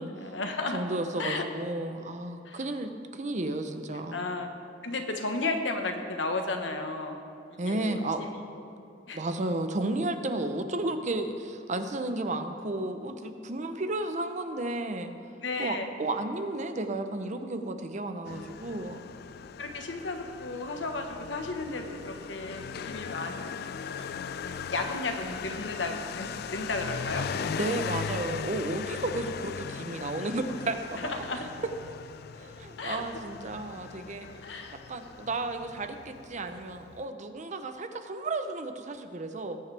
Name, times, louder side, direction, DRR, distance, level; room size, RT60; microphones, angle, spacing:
voice 1, 0.2-0.8 1.2-1.4 2.4-2.7 4.1-4.5 4.8-7.2 7.7-8.6 9.1-9.2 15.4-15.8 19.6-23.6 23.9-24.1 24.7-27.3 27.8-27.9 31.0-31.5 32.8-33.2 34.4-34.8, left 3 dB, 85° left, 4 dB, 1.3 m, -34 dB
voice 2, 0.7-4.2 7.6-8.2 9.1-15.1 15.6-19.0 27.6-31.0 32.4-39.6, right 2 dB, 40° right, 8 dB, 0.7 m, -33 dB
Motorcycle, 18.2-37.0, left 6 dB, 60° left, 0.3 m, -39 dB
19.5 x 8.9 x 3.4 m, 2.8 s
head